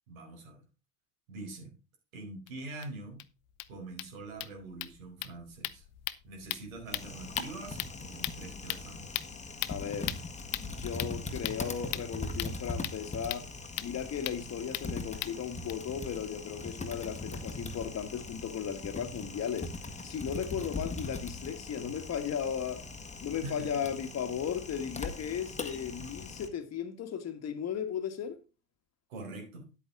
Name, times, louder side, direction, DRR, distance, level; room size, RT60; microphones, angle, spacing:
voice 1, 0.1-0.6 1.3-1.8 2.1-3.2 3.7-5.8 6.2-9.2 23.4-23.8 29.1-29.7, right 2 dB, 80° right, 4.5 m, -44 dB
sound 1, 2.5-2.6 2.8-2.9 3.2-3.3 3.5-15.7, left 18 dB, 65° left, 0.8 m, -40 dB
Typing, 6.9-26.5, left 3 dB, 15° left, 1.6 m, -41 dB
voice 2, 9.7-10.1 10.6-13.5 13.8-19.7 20.0-22.8 23.2-28.4, left 8 dB, 40° left, 1.6 m, -36 dB
10.0 x 8.3 x 3.7 m
hypercardioid pair, 75°, 40 cm